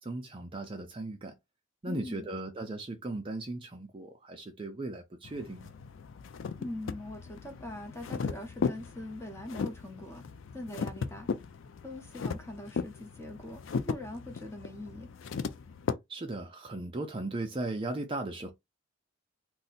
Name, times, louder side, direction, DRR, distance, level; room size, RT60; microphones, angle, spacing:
voice 1, 0.0-1.3 1.8-5.7 16.1-18.5, right 2 dB, 25° right, 0.4 m, -37 dB
voice 2, 1.8-2.3 6.6-10.2 10.5-11.3 11.8-13.6 13.9-15.1, left 1 dB, 15° left, 0.7 m, -42 dB
sound 1, 5.2-15.9, left 5 dB, 65° left, 0.4 m, -37 dB
2.6 x 2.1 x 3.9 m
head